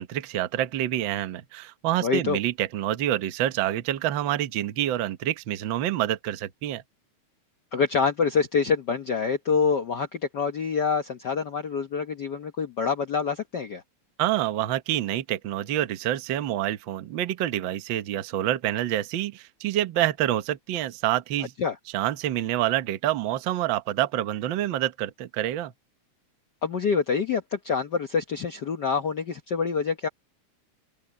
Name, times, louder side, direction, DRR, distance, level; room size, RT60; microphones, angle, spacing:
voice 1, 0.0-6.8 14.2-21.5 21.9-25.7, right 12 dB, 60° right, 1.3 m, -27 dB
voice 2, 2.0-2.4 7.7-13.8 21.6-21.7 26.6-30.1, left 5 dB, 65° left, 1.0 m, -26 dB
omnidirectional pair, 3.4 m